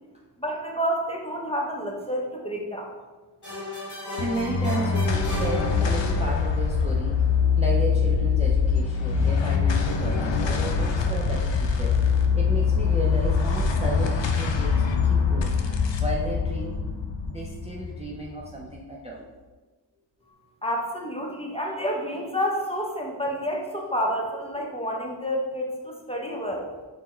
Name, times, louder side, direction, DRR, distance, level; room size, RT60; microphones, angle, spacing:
voice 1, 0.4-2.9 20.6-26.7, equal, 15° left, -1 dB, 0.8 m, -29 dB
sound 1, 3.4-6.4, left 2 dB, 45° left, 1.3 m, -35 dB
voice 2, 3.8-15.6 16.0-16.9 17.2-19.2, right 2 dB, 15° right, -3 dB, 0.5 m, -34 dB
sound 2, 4.2-18.8, left 5 dB, 80° left, 0.5 m, -23 dB
4.2 x 2.2 x 4.3 m, 1.3 s
wide cardioid pair, 45°, 44 cm